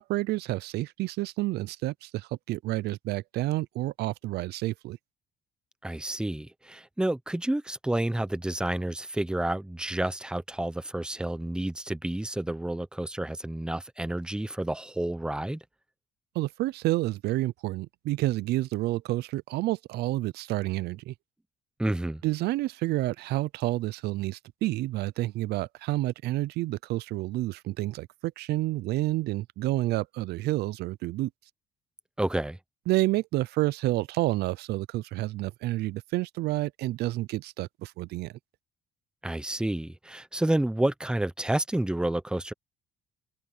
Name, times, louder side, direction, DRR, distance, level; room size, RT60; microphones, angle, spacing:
voice 1, 0.0-5.0 16.3-21.1 22.2-31.3 32.9-38.3, right 17 dB, 75° right, 0.5 m, -29 dB
voice 2, 5.8-15.6 21.8-22.2 32.2-32.6 39.2-42.5, right 1 dB, 5° right, 0.9 m, -30 dB
cardioid pair, 110°, 17 cm